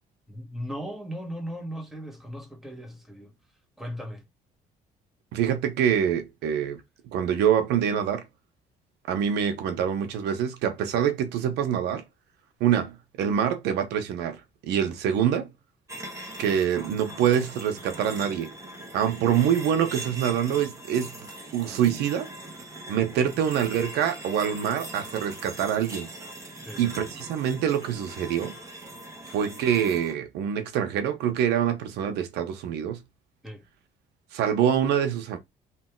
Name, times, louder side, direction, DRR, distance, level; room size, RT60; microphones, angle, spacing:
voice 1, 0.3-3.3 3.8-4.2 26.6-26.8 33.4-33.6, equal, ahead, 1.7 m, -37 dB
voice 2, 5.3-6.8 7.1-8.2 9.1-12.0 12.6-14.4 14.6-15.5 16.4-18.5 18.9-21.1 21.5-22.3 22.9-26.1 26.8-28.6 29.3-33.0 34.3-35.4, right 9 dB, 85° right, 1.1 m, -25 dB
sound 1, 15.9-30.1, right 1 dB, 20° right, 1.4 m, -41 dB
3.5 x 3.2 x 4.5 m
cardioid pair, 110°, 17 cm